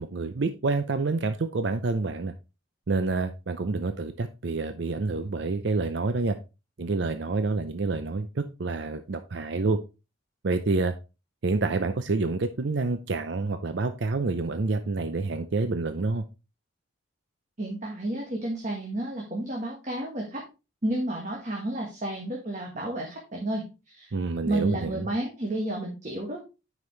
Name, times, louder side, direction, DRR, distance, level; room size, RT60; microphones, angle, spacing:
voice 1, 0.0-2.3 2.9-6.4 6.8-9.8 10.4-10.9 11.4-16.2 24.1-25.1, right 3 dB, 60° right, 9 dB, 0.5 m, -28 dB
voice 2, 17.6-20.4 20.8-24.1 24.4-26.4, right 1 dB, 35° right, -1 dB, 1.4 m, -31 dB
9.4 x 5.1 x 3.2 m, 0.29 s
head